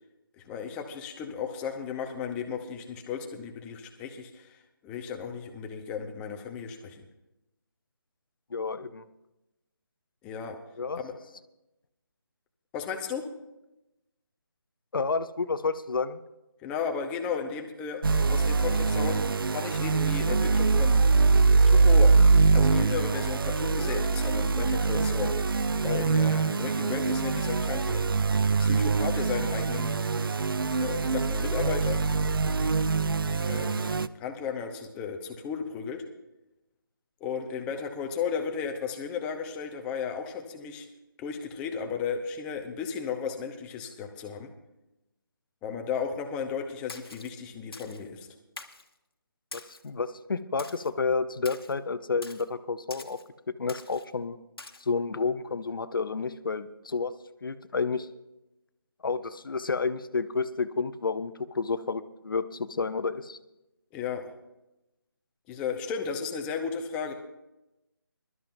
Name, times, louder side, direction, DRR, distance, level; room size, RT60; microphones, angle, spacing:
voice 1, 0.4-7.0 10.2-10.6 11.0-11.1 12.7-13.2 16.6-18.0 18.3-20.9 21.6-22.1 22.5-28.0 28.6-30.0 30.8-32.0 33.4-36.0 37.2-40.9 41.2-44.5 45.6-48.3 63.9-64.2 65.5-67.1, left 6 dB, 10° left, 4 dB, 0.7 m, -34 dB
voice 2, 8.5-9.0 10.8-11.0 14.9-16.2 49.5-53.2 53.6-54.4 54.8-57.1 57.4-58.1 59.0-63.4, left 4 dB, 65° left, 11 dB, 0.8 m, -30 dB
sound 1, 18.0-34.1, right 4 dB, 70° right, 0.5 m, -23 dB
Splash splatter, 46.9-47.3 47.7-48.0 48.6-48.9 49.5-49.9 50.6-50.9 51.5-51.7 52.2-52.5 52.9-53.2 53.7-54.1 54.6-54.8, left 3 dB, 85° left, 1.4 m, -45 dB
22.0 x 12.5 x 2.6 m, 0.94 s
figure-of-eight pair, 160°, 12 cm